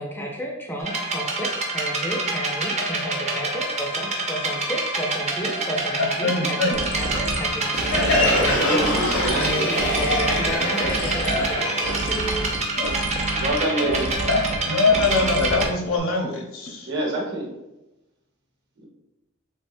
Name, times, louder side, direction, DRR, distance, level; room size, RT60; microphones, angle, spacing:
voice 1, 0.0-11.6 12.1-12.6, equal, 10° left, 0 dB, 0.5 m, -31 dB
sound 1, 0.8-15.6, right 2 dB, 30° right, 0.6 m, -27 dB
voice 2, 6.0-6.8 12.7-12.9 13.8-14.0 14.3-16.9, left 3 dB, 70° left, 0 dB, 0.8 m, -23 dB
sound 2, 6.7-16.0, right 2 dB, 80° right, 0.6 m, -31 dB
Crowd, 7.7-13.2, left 1 dB, 85° left, 1.1 m, -25 dB
voice 3, 8.5-9.7 13.3-14.0 16.9-17.5, right 1 dB, 55° right, -1 dB, 1.0 m, -26 dB
3.3 x 3.2 x 2.6 m, 0.96 s
head